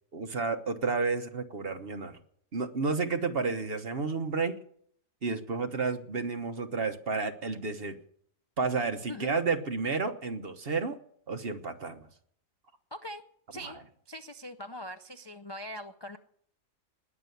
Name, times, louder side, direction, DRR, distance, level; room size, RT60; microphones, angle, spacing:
voice 1, 0.1-2.2 2.5-4.6 5.2-8.0 8.6-11.0 11.3-12.1 13.6-13.7, right 4 dB, 45° right, 7 dB, 1.3 m, -31 dB
voice 2, 9.1-9.4 12.9-13.2 13.5-13.8 14.1-16.2, left 1 dB, 40° left, 7 dB, 0.4 m, -41 dB
19.5 x 7.0 x 9.4 m, 0.66 s
omnidirectional pair, 1.4 m